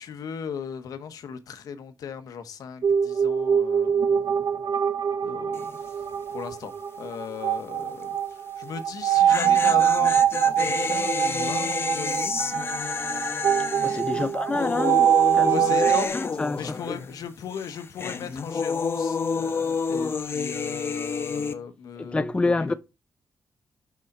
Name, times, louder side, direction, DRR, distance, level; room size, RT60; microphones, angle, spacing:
voice 1, 0.0-4.6 5.2-6.0 6.3-6.7 7.0-12.4 13.9-14.3 15.5-16.2 16.6-22.2 22.4-22.7, left 7 dB, 85° left, 1.1 m, -37 dB
sound 1, 2.8-16.1, right 9 dB, 65° right, 0.7 m, -24 dB
sound 2, 5.5-5.9 6.1-6.2 8.9-17.3 17.5-21.5, left 5 dB, 40° left, 0.9 m, -29 dB
voice 2, 13.8-15.6 16.1-17.0 22.0-22.7, left 3 dB, 15° left, 0.4 m, -28 dB
6.2 x 5.6 x 4.2 m
cardioid pair, 115°, 6 cm